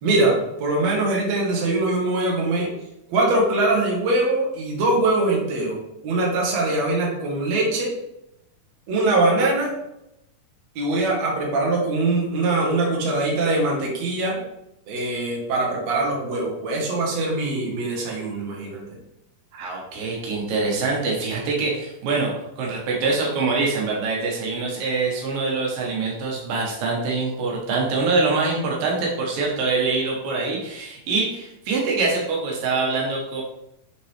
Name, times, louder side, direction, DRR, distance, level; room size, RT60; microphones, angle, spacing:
voice 1, 0.0-2.7 3.1-7.9 8.9-9.7 10.8-14.4 14.9-19.0, right 2 dB, 55° right, -2 dB, 2.6 m, -22 dB
voice 2, 19.5-33.4, right 3 dB, 85° right, -2 dB, 3.0 m, -24 dB
8.6 x 4.0 x 3.4 m, 0.84 s
omnidirectional pair, 3.9 m